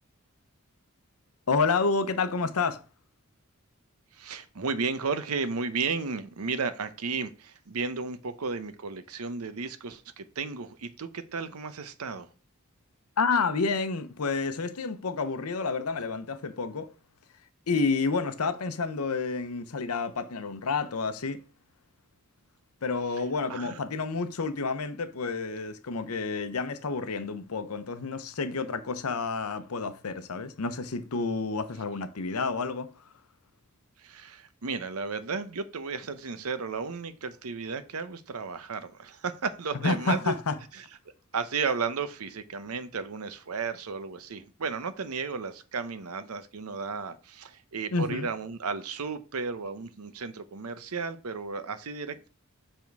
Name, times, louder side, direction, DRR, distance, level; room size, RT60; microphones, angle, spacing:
voice 1, 1.5-2.8 13.2-16.9 17.7-21.4 22.8-32.9 39.8-40.6 47.9-48.3, left 4 dB, 85° left, 0.8 m, -29 dB
voice 2, 4.1-12.3 23.5-23.8 34.0-40.4 40.7-40.8 41.3-52.3, right 4 dB, 85° right, 0.8 m, -34 dB
7.2 x 3.7 x 4.6 m
head